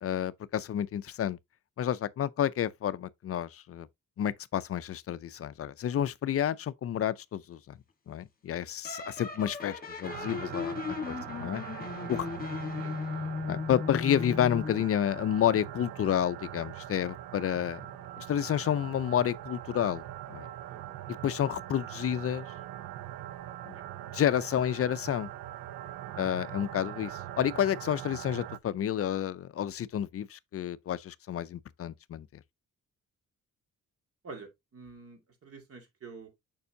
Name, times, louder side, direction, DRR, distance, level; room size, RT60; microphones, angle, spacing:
voice 1, 0.0-1.4 1.8-3.9 4.2-7.8 8.1-10.8 11.1-11.6 12.1-12.3 13.5-17.8 18.2-20.5 21.2-22.5 23.7-23.8 24.1-25.3 26.2-32.3, left 10 dB, 45° left, 0.4 m, -30 dB
sound 1, 8.8-14.9, left 4 dB, 25° left, 1.4 m, -36 dB
sound 2, 10.0-28.6, right 13 dB, 85° right, 0.5 m, -42 dB
voice 2, 11.1-11.5 12.0-12.4 12.7-13.2 20.7-21.0 23.7-23.8 26.0-26.3 34.2-36.3, right 4 dB, 45° right, 2.1 m, -50 dB
6.9 x 5.4 x 2.7 m
wide cardioid pair, 150°, 32 cm